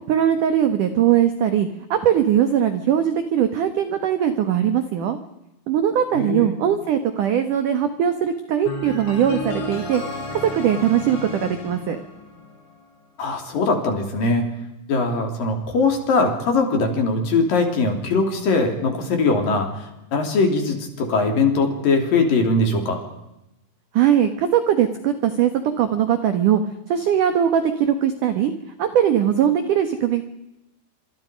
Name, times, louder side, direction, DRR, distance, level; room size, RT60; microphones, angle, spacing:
voice 1, 0.1-5.2 5.7-10.0 10.3-12.0 23.9-26.6 26.9-28.5 28.8-30.2, right 9 dB, 75° right, 9 dB, 1.9 m, -20 dB
voice 2, 6.1-6.5 13.2-14.4 14.9-23.0, left 3 dB, 50° left, 4 dB, 4.6 m, -21 dB
sound 1, 8.7-12.7, left 2 dB, 80° left, 8.9 m, -32 dB
27.5 x 26.0 x 5.2 m, 0.92 s
omnidirectional pair, 5.6 m